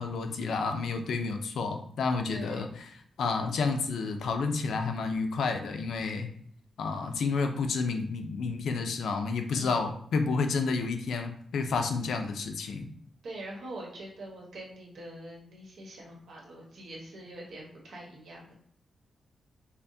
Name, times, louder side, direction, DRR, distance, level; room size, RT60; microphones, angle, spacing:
voice 1, 0.0-2.7 3.2-6.3 6.8-12.9, left 4 dB, 85° left, 5 dB, 0.5 m, -30 dB
voice 2, 2.3-2.7 9.5-9.9 13.2-18.5, right 1 dB, 75° right, -2 dB, 1.2 m, -44 dB
5.6 x 2.1 x 2.7 m, 0.62 s
wide cardioid pair, 145°, 0 cm